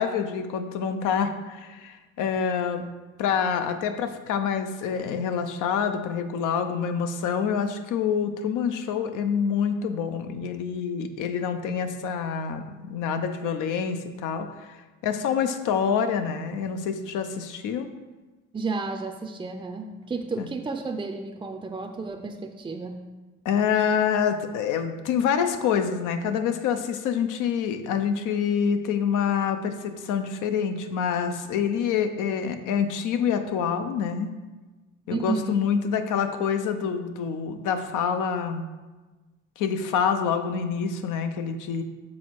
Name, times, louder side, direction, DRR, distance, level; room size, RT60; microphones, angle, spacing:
voice 1, 0.0-2.9 3.2-17.9 20.4-20.5 23.4-34.3 35.1-38.6 39.6-41.8, left 7 dB, 90° left, 8 dB, 0.6 m, -26 dB
voice 2, 18.5-23.1 35.1-35.5, right 4 dB, 15° right, 4 dB, 0.4 m, -32 dB
6.3 x 4.2 x 4.6 m, 1.2 s
cardioid pair, 90°, 30 cm